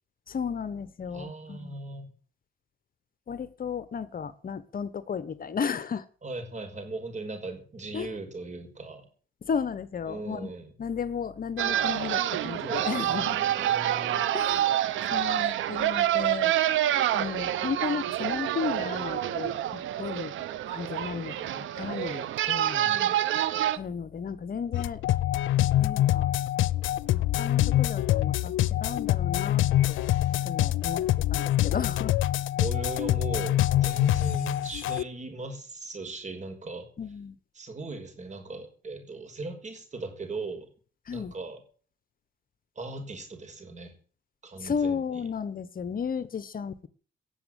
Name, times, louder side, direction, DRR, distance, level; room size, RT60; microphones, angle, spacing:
voice 1, 0.3-1.7 3.3-6.0 7.9-8.1 9.4-10.5 10.8-13.4 14.3-14.7 15.1-16.5 17.1-20.3 20.7-23.0 23.7-25.0 25.8-26.3 27.1-32.2 37.0-37.3 41.1-41.3 44.6-46.9, left 6 dB, 45° left, 15 dB, 1.2 m, -34 dB
voice 2, 1.1-2.1 6.2-9.1 10.1-10.7 12.6-14.2 22.8-23.2 32.6-36.9 37.5-40.7 41.1-41.6 42.8-43.9 44.4-45.0, right 2 dB, 35° right, 5 dB, 5.8 m, -38 dB
sound 1, 11.6-23.8, right 12 dB, 75° right, 1.1 m, -27 dB
sound 2, 24.7-35.0, left 14 dB, 80° left, 0.7 m, -25 dB
17.5 x 7.3 x 9.1 m, 0.43 s
cardioid pair, 90°, 20 cm